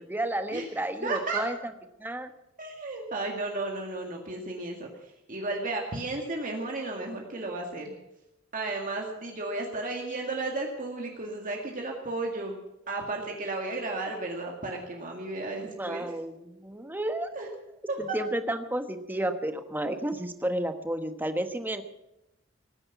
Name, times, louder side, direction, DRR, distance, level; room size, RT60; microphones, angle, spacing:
voice 1, 0.0-1.6 2.0-2.3 15.6-17.3 18.0-21.8, right 1 dB, 10° right, 8 dB, 1.2 m, -32 dB
voice 2, 1.0-1.4 2.6-7.9 8.5-12.5 12.9-16.1 17.3-17.5 17.9-18.2, right 2 dB, 40° right, 1 dB, 2.1 m, -33 dB
19.5 x 10.0 x 7.1 m, 0.89 s
head